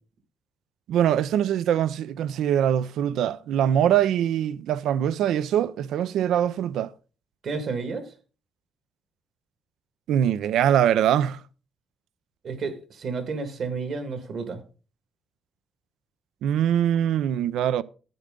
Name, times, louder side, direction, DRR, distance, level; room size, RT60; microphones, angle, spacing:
voice 1, 0.9-6.9 10.1-11.4 16.4-17.8, right 10 dB, 80° right, 0.5 m, -23 dB
voice 2, 7.4-8.1 12.4-14.6, right 4 dB, 60° right, 1.9 m, -31 dB
12.0 x 9.2 x 3.8 m
cardioid pair, 90°, 0 cm